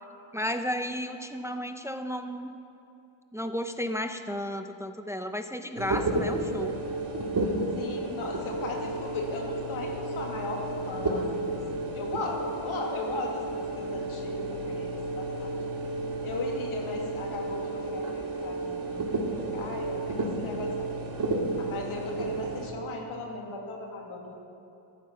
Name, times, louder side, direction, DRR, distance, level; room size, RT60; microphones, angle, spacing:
voice 1, 0.3-2.6 3.3-6.8, equal, 5° right, 7 dB, 0.6 m, -33 dB
Small server starting up, 5.8-22.7, right 2 dB, 45° right, 1.9 m, -32 dB
voice 2, 7.8-11.6 11.9-15.6 16.2-19.2 19.5-20.9 21.6-24.4, left 3 dB, 90° left, 0 dB, 2.3 m, -37 dB
14.0 x 10.5 x 6.2 m, 2.8 s
cardioid pair, 85°, 48 cm